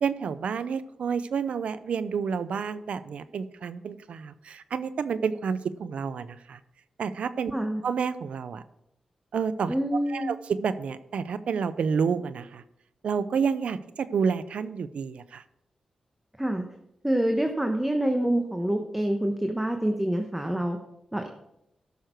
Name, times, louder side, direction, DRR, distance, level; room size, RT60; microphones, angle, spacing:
voice 1, 0.0-6.6 7.0-7.5 7.8-8.6 9.3-9.7 10.1-12.6 13.0-15.4, right 6 dB, 80° right, 14 dB, 0.6 m, -29 dB
voice 2, 7.5-7.8 9.7-10.3 16.4-16.7 17.0-20.8 21.1-21.3, right 1 dB, 10° right, 4 dB, 1.1 m, -26 dB
14.0 x 6.5 x 4.5 m, 0.82 s
cardioid pair, 55°, 2 cm